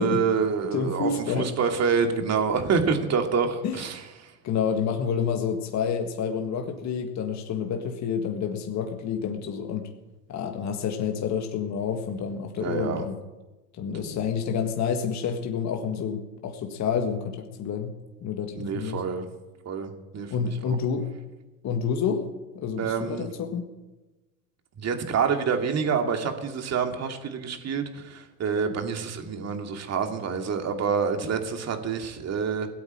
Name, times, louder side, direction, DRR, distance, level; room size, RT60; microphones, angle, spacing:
voice 1, 0.0-4.0 12.6-13.0 14.0-14.2 18.5-19.3 19.7-20.8 22.8-23.3 24.8-32.7, right 6 dB, 30° right, 4 dB, 2.6 m, -27 dB
voice 2, 0.7-1.5 3.6-3.8 4.4-9.9 10.3-13.2 13.7-17.9 18.2-19.0 20.3-21.1 21.6-22.3 22.6-23.7, left 6 dB, 35° left, 4 dB, 1.8 m, -29 dB
18.0 x 8.4 x 8.9 m, 1.1 s
hypercardioid pair, 100°, 50 cm